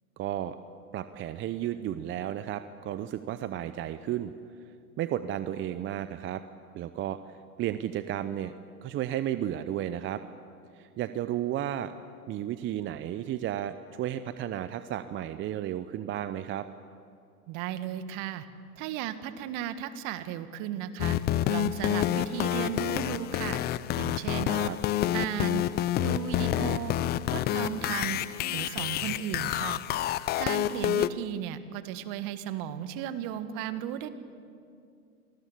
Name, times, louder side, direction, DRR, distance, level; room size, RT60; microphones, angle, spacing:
voice 1, 0.2-0.6 0.9-4.3 5.0-6.4 6.7-8.5 8.8-10.2 10.7-11.9 12.3-16.7 24.4-24.8, right 11 dB, 25° right, 12 dB, 0.7 m, -33 dB
voice 2, 17.5-18.5 18.8-21.2 21.5-23.6 24.0-24.5 25.1-25.6 26.0-26.9 27.3-28.2 28.5-29.8 30.4-34.1, right 10 dB, 45° right, 11 dB, 1.8 m, -35 dB
sound 1, 21.0-31.1, left 12 dB, 20° left, 0.5 m, -28 dB
27.0 x 19.5 x 8.4 m, 2.4 s
hypercardioid pair, 100°, 45 cm